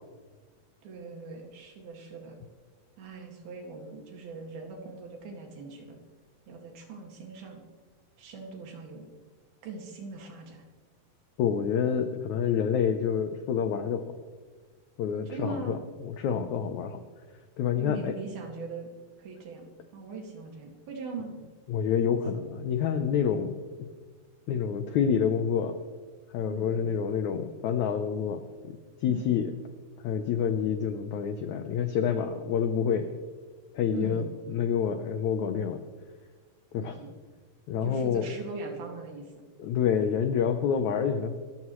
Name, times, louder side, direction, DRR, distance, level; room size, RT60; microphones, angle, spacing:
voice 1, 0.8-2.4 3.0-6.0 6.5-7.6 8.2-9.1 9.6-10.6 15.3-15.8 17.8-18.9 19.2-21.4 26.5-26.8 29.1-29.3 33.9-34.3 36.8-37.1 37.8-39.3, right 4 dB, 75° right, 1 dB, 4.0 m, -40 dB
voice 2, 11.4-14.0 15.0-15.8 16.0-17.0 17.6-18.1 21.7-23.5 24.5-25.8 26.3-29.5 30.0-33.1 33.7-34.2 34.5-35.8 36.7-37.0 37.7-38.2 39.6-41.4, left 7 dB, 80° left, 7 dB, 1.7 m, -28 dB
26.0 x 14.0 x 3.1 m, 1.4 s
omnidirectional pair, 4.4 m